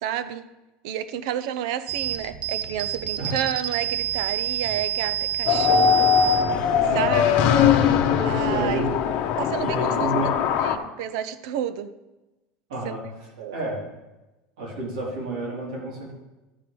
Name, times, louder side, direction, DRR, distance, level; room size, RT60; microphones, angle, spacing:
voice 1, 0.0-0.5 0.8-6.4 6.9-7.4 8.1-8.8 9.4-10.1 10.6-11.9 12.8-13.0 13.4-13.5, right 10 dB, 70° right, 13 dB, 0.6 m, -30 dB
sound 1, 1.9-8.3, right 11 dB, 35° right, 0.7 m, -29 dB
sound 2, 5.5-10.8, left 8 dB, 50° left, 0.8 m, -21 dB
voice 2, 6.9-7.3 8.4-9.1 9.6-10.5 12.7-13.9 14.6-16.1, right 1 dB, 90° right, -3 dB, 3.8 m, -30 dB
13.0 x 4.6 x 5.2 m, 1.0 s
supercardioid pair, 155°, 3 cm